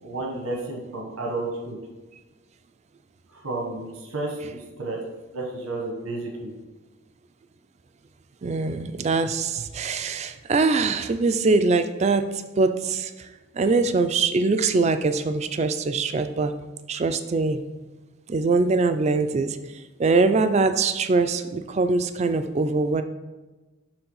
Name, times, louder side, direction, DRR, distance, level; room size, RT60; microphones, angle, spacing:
voice 1, 0.0-1.8 3.3-5.0 5.3-6.5, right 2 dB, 85° right, 0 dB, 1.3 m, -31 dB
voice 2, 8.4-13.3 13.5-16.5 16.9-17.6 18.3-23.0, right 3 dB, 30° right, 9 dB, 0.3 m, -23 dB
7.0 x 3.3 x 5.5 m, 1.2 s
head